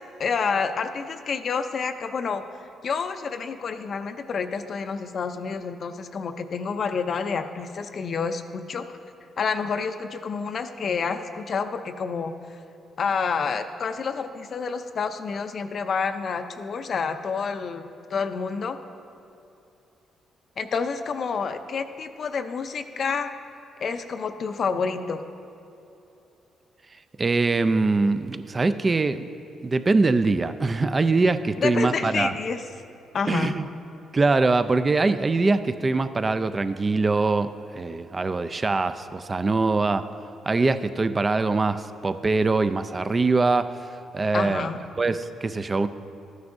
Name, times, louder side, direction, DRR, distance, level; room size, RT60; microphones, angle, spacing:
voice 1, 0.2-9.0 9.4-12.6 13.0-18.8 20.6-23.3 23.8-25.2 31.6-32.6 33.1-33.5 44.3-44.8, left 5 dB, 50° left, 8 dB, 0.5 m, -29 dB
voice 2, 27.2-29.3 29.6-32.3 33.3-33.7 34.1-40.1 40.5-43.8 44.1-44.7 45.0-45.9, right 3 dB, 30° right, 12 dB, 0.4 m, -23 dB
13.0 x 9.5 x 2.6 m, 2.8 s
cardioid pair, 90°, 0 cm